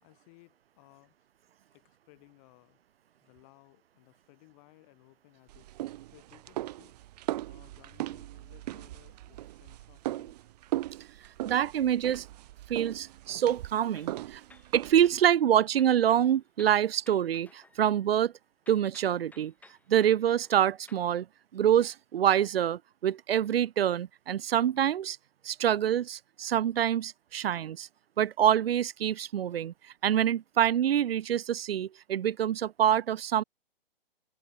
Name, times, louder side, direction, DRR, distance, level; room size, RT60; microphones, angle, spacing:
voice 1, 0.0-1.2 1.7-2.8 3.2-5.7 6.1-7.0 7.4-10.5, left 31 dB, 35° left, 5.1 m, -60 dB
sound 1, 5.5-15.2, right 15 dB, 45° right, 0.6 m, -38 dB
voice 2, 11.4-12.3 12.7-14.4 14.7-18.3 18.7-19.5 19.9-21.3 21.5-25.2 25.4-27.9 28.2-29.7 30.0-33.4, right 10 dB, 85° right, 0.5 m, -26 dB
sound 2, 13.6-15.3 15.7-18.3 18.7-21.1, left 3 dB, 5° left, 1.9 m, -59 dB
hypercardioid pair, 135°, 29 cm